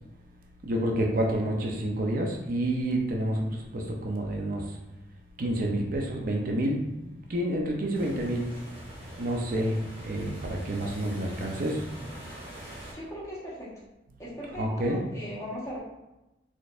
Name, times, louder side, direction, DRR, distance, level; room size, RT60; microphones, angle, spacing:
voice 1, 0.6-4.8 5.4-8.5 9.2-11.9 14.6-15.0, right 1 dB, 55° right, 0 dB, 0.5 m, -29 dB
sound 1, 7.9-12.9, right 1 dB, 35° right, 1.2 m, -43 dB
voice 2, 12.9-13.7 14.2-15.8, equal, 20° left, -6 dB, 1.1 m, -38 dB
4.1 x 3.0 x 2.4 m, 0.96 s
head